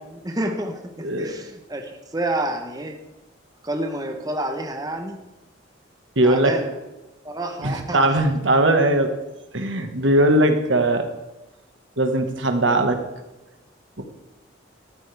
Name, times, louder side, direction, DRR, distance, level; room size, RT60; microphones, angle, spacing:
voice 1, 0.0-3.0 3.6-5.2 6.2-6.8 7.2-8.2, right 1 dB, 20° right, 4 dB, 1.1 m, -29 dB
voice 2, 6.1-6.5 7.6-9.1 9.5-11.0 12.0-13.0 14.0-14.1, right 1 dB, 75° right, 5 dB, 1.7 m, -19 dB
14.0 x 13.5 x 3.5 m, 1.0 s
head